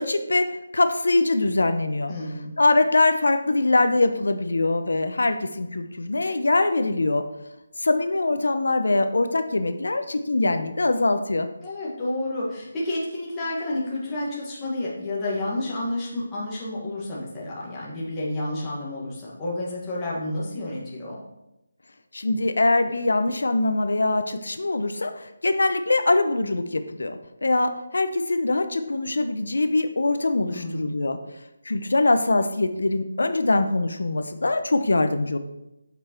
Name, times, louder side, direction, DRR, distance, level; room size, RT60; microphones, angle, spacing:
voice 1, 0.0-2.1 2.6-7.2 7.8-11.5 22.1-31.2 31.6-35.4, left 2 dB, 70° left, 8 dB, 0.9 m, -23 dB
voice 2, 2.1-2.5 11.6-21.2 30.5-30.9, left 1 dB, 10° left, -7 dB, 1.8 m, -30 dB
7.9 x 7.2 x 4.5 m, 0.91 s
figure-of-eight pair, 180°, 0 cm